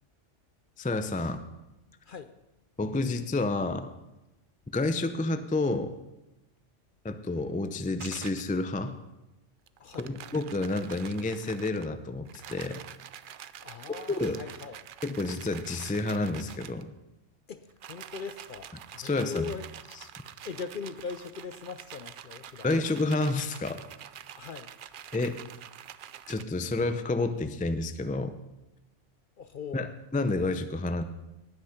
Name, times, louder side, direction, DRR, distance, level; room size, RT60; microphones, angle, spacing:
voice 1, 0.8-1.4 2.8-3.9 4.7-5.9 7.0-9.0 10.0-12.8 14.1-14.4 15.0-16.9 19.0-19.4 22.6-23.8 25.1-25.4 26.3-28.4 29.7-31.0, left 2 dB, 15° left, 10 dB, 0.3 m, -29 dB
sound 1, 8.0-8.5 9.7-11.9 12.2-16.8 17.7-26.4, right 10 dB, 60° right, 0.6 m, -46 dB
voice 2, 9.8-10.1 13.6-14.8 17.5-19.7 20.4-22.7 24.4-24.7 29.4-29.9, left 5 dB, 55° left, 11 dB, 0.6 m, -40 dB
19.0 x 6.4 x 5.8 m, 1.0 s
omnidirectional pair, 1.3 m